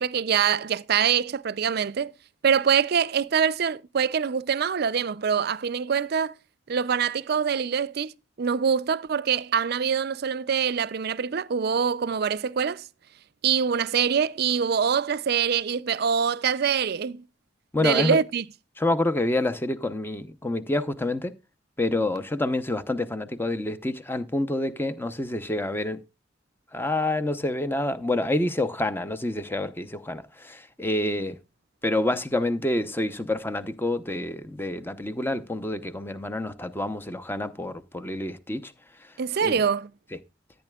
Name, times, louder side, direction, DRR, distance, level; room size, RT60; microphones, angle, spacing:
voice 1, 0.0-2.1 2.4-6.3 6.7-8.1 8.4-12.8 13.4-17.2 17.8-18.4 39.2-39.9, right 7 dB, 55° right, 0.4 m, -24 dB
voice 2, 17.7-18.2 18.8-21.3 21.8-26.0 26.7-31.4 31.8-38.7 39.0-39.1 39.4-39.6, left 1 dB, 10° left, 0.7 m, -27 dB
14.0 x 9.1 x 2.3 m
head